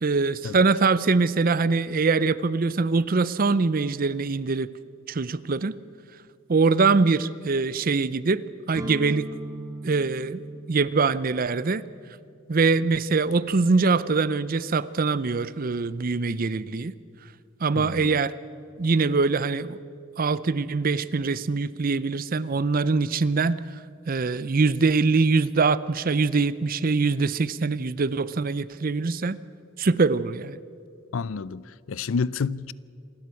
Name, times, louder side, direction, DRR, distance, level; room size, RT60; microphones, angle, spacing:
voice 1, 0.0-4.7 5.1-5.7 6.5-8.4 8.7-9.3 9.8-10.4 10.7-11.8 12.5-16.9 17.6-18.3 18.8-19.8 20.2-23.6 24.1-29.4 29.8-30.6, right 4 dB, 40° right, 0.5 m, -23 dB
sound 1, 8.7-16.5, right 1 dB, 15° right, 1.2 m, -42 dB
voice 2, 17.7-18.2 31.1-32.7, left 5 dB, 70° left, 0.5 m, -29 dB
27.5 x 12.0 x 8.3 m
head